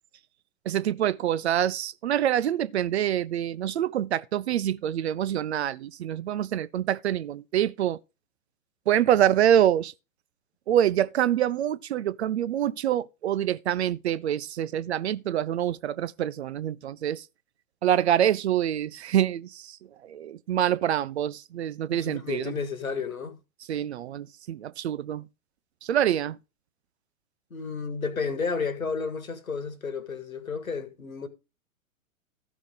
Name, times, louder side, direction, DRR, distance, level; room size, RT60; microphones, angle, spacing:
voice 1, 0.6-8.0 8.9-9.9 10.7-17.3 17.8-19.8 20.0-22.6 23.7-25.3 25.8-26.4, right 11 dB, 50° right, 0.7 m, -26 dB
voice 2, 21.9-23.4 27.5-31.3, left 5 dB, 75° left, 1.9 m, -32 dB
14.0 x 6.0 x 3.9 m
figure-of-eight pair, 105°, 42 cm